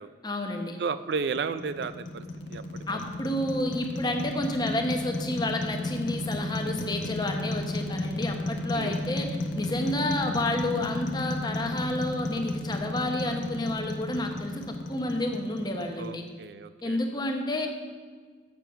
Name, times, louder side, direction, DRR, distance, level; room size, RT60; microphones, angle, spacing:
voice 1, 0.2-0.8 2.9-14.6 14.9-16.2 16.8-17.7, left 1 dB, 25° left, 4 dB, 0.9 m, -30 dB
voice 2, 0.8-2.2 2.5-2.6 8.7-9.0 16.0-17.0, right 5 dB, 60° right, 13 dB, 0.3 m, -33 dB
sound 1, 1.1-16.3, left 1 dB, 80° left, 0.9 m, -34 dB
7.7 x 6.9 x 5.8 m, 1.5 s
head